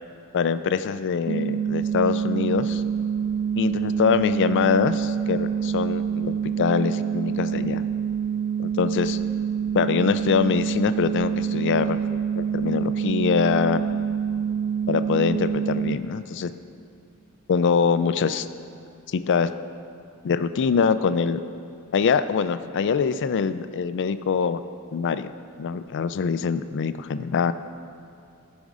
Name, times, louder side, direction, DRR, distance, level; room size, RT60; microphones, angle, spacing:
voice 1, 0.3-2.8 3.6-7.8 8.6-9.2 9.7-12.0 12.4-13.9 14.9-16.5 17.5-18.5 19.1-19.5 20.2-21.4 21.9-24.6 24.9-25.3 25.6-27.5, left 6 dB, 55° left, 12 dB, 0.4 m, -24 dB
sound 1, 1.3-16.0, right 7 dB, 45° right, 0.3 m, -26 dB
15.5 x 5.3 x 4.9 m, 2.6 s
head